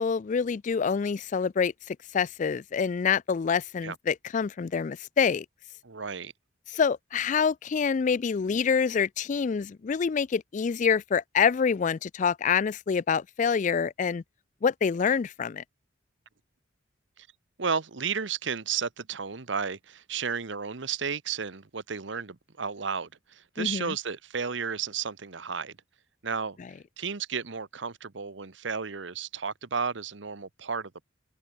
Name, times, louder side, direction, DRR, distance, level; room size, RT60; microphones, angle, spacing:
voice 1, 0.0-5.5 6.7-14.2 14.6-15.6 23.6-24.0, left 6 dB, 40° left, 0.3 m, -26 dB
voice 2, 5.8-6.3 17.2-17.3 17.6-25.8 26.2-26.6 27.0-31.0, right 6 dB, 70° right, 1.0 m, -33 dB
open air
head